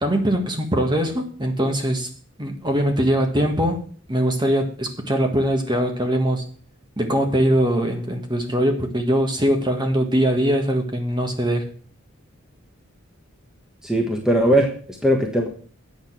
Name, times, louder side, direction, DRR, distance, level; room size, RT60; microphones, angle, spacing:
voice 1, 0.0-2.1 2.4-3.8 4.1-6.4 7.0-11.7, equal, 20° right, 4 dB, 1.6 m, -21 dB
voice 2, 13.8-15.5, right 1 dB, 5° right, 1 dB, 1.3 m, -20 dB
8.8 x 6.5 x 7.4 m, 0.44 s
head